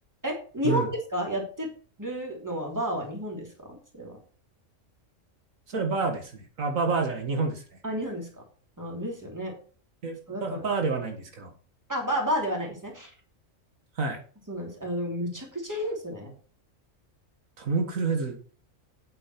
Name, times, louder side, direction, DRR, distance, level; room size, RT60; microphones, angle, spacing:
voice 1, 0.2-1.7 2.0-4.2 7.8-8.4 8.8-9.5 10.3-10.7 11.9-13.1 14.5-16.3, equal, 15° right, 0 dB, 3.1 m, -31 dB
voice 2, 5.7-7.6 10.0-11.5 14.0-14.2 17.6-18.4, right 4 dB, 85° right, 4 dB, 2.1 m, -28 dB
8.8 x 7.9 x 4.5 m, 0.42 s
omnidirectional pair, 1.4 m